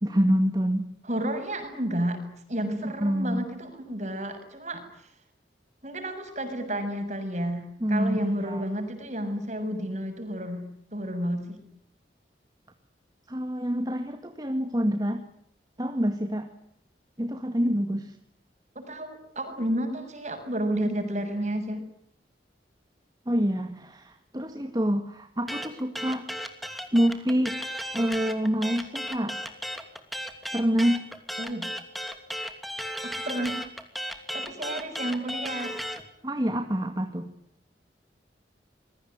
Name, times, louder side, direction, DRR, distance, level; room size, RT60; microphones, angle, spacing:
voice 1, 0.0-0.9 2.8-3.4 7.8-8.6 13.3-15.2 15.8-16.5 17.2-18.2 23.3-26.3 26.9-27.6 27.9-29.4 30.5-31.1 36.2-37.3, equal, 20° right, 6 dB, 2.0 m, -26 dB
voice 2, 1.0-2.2 2.5-5.1 5.8-11.6 18.8-21.8 31.4-31.7 33.0-33.6 34.3-35.7, right 1 dB, 40° right, 7 dB, 7.1 m, -31 dB
sound 1, 25.5-36.0, equal, ahead, 2.9 m, -35 dB
26.5 x 22.5 x 9.6 m, 0.68 s
head